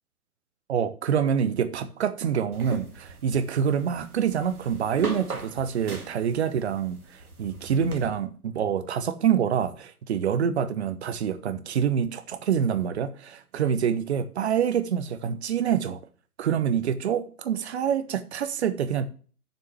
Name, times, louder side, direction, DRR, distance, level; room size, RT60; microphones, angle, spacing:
voice 1, 0.7-16.0 16.4-19.0, right 8 dB, 45° right, 1.0 m, -26 dB
sound 1, 2.5-8.1, right 2 dB, 70° right, 2.1 m, -40 dB
7.1 x 6.2 x 7.2 m
figure-of-eight pair, 120°, 45 cm